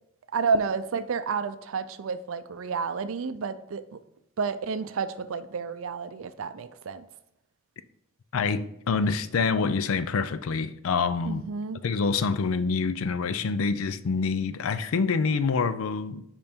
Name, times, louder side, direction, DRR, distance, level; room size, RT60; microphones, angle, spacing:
voice 1, 0.3-4.0 4.4-7.1 11.2-11.8, right 5 dB, 75° right, 0.5 m, -30 dB
voice 2, 8.3-11.4 11.8-16.2, left 5 dB, 75° left, 0.4 m, -26 dB
5.4 x 5.2 x 4.4 m
head